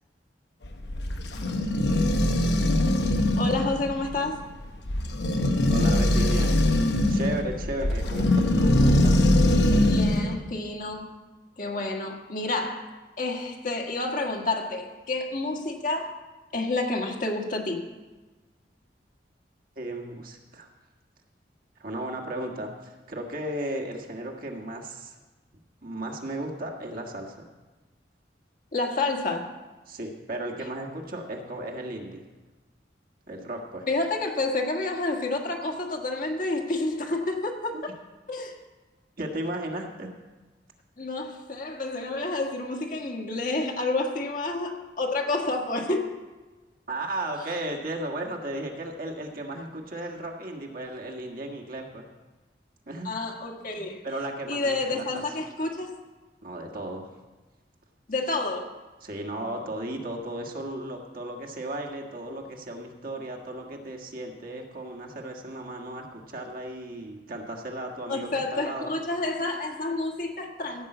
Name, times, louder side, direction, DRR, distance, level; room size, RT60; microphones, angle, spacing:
sound 1, 0.6-10.3, left 1 dB, 70° left, 1.0 m, -22 dB
voice 1, 3.4-4.4 9.8-11.1 11.6-12.9 13.2-16.1 16.5-17.8 28.7-29.5 33.9-37.9 38.3-38.5 41.0-46.1 53.0-54.0 54.5-55.9 58.1-58.7 68.1-70.9, left 2 dB, 50° left, 2 dB, 1.5 m, -29 dB
voice 2, 5.7-6.6 7.1-9.3 19.7-20.7 21.8-25.2 25.8-27.5 29.9-32.2 33.3-33.9 37.7-37.8 39.2-40.1 46.9-52.1 52.9-53.1 54.0-55.2 56.4-57.1 59.0-68.9, right 1 dB, 55° right, 0 dB, 1.6 m, -35 dB
15.5 x 5.5 x 7.8 m, 1.2 s
head